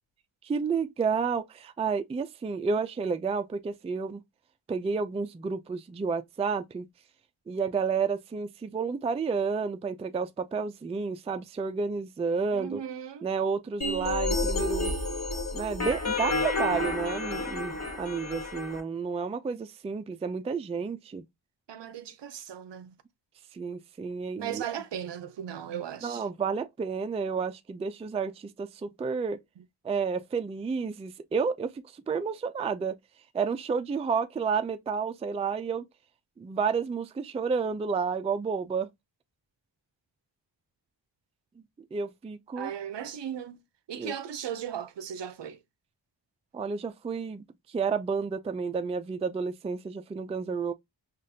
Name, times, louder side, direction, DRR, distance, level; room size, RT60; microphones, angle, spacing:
voice 1, 0.4-4.2 4.7-6.9 7.5-12.8 13.2-14.9 15.5-21.2 23.5-24.6 26.0-29.4 29.8-32.9 33.3-35.8 36.4-38.9 41.9-42.7 44.0-44.1 46.5-50.7, right 5 dB, 15° right, 0.3 m, -31 dB
voice 2, 12.5-13.3 21.7-22.9 24.4-26.2 29.6-29.7 42.6-43.6 43.9-45.6, right 9 dB, 65° right, 0.7 m, -37 dB
sound 1, 13.8-18.8, left 2 dB, 35° left, 1.4 m, -30 dB
5.1 x 2.4 x 2.7 m
wide cardioid pair, 90°, 46 cm